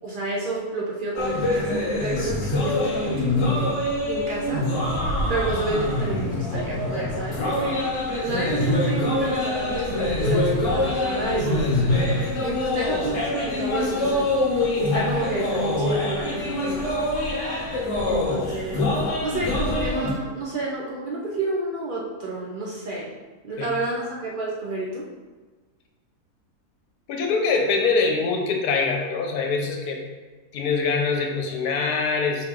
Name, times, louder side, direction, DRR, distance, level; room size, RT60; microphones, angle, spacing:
voice 1, 0.0-3.8 4.1-4.7 5.3-7.9 8.2-11.7 12.4-17.0 18.0-23.1 23.4-25.1, right 2 dB, 60° right, -4 dB, 0.5 m, -30 dB
sound 1, 1.1-20.1, left 2 dB, 55° left, 1.2 m, -25 dB
voice 2, 27.1-30.0 30.5-32.5, left 4 dB, 80° left, 2 dB, 1.2 m, -24 dB
4.8 x 2.8 x 3.6 m, 1.3 s
omnidirectional pair, 1.6 m